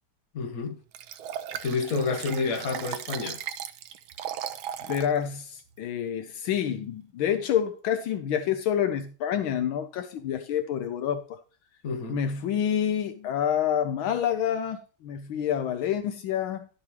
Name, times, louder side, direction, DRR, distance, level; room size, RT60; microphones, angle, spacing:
voice 1, 0.3-0.8 1.6-3.4 11.8-12.2, left 4 dB, 45° left, 1.7 m, -29 dB
Liquid, 0.9-5.1 5.6-5.7, right 10 dB, 80° right, 1.5 m, -37 dB
voice 2, 4.9-11.4 12.1-16.7, left 9 dB, 75° left, 1.5 m, -28 dB
12.0 x 7.2 x 3.2 m
omnidirectional pair, 2.3 m